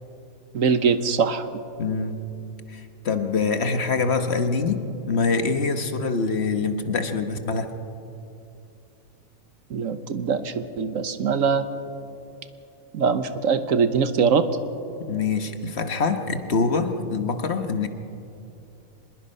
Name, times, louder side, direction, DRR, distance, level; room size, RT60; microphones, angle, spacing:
voice 1, 0.5-1.5 9.7-11.7 12.9-14.5, right 6 dB, 75° right, 10 dB, 1.4 m, -22 dB
voice 2, 1.8-2.2 2.7-7.7 15.0-17.9, left 4 dB, 55° left, 7 dB, 1.4 m, -25 dB
25.0 x 21.0 x 5.5 m, 2.7 s
omnidirectional pair, 1.4 m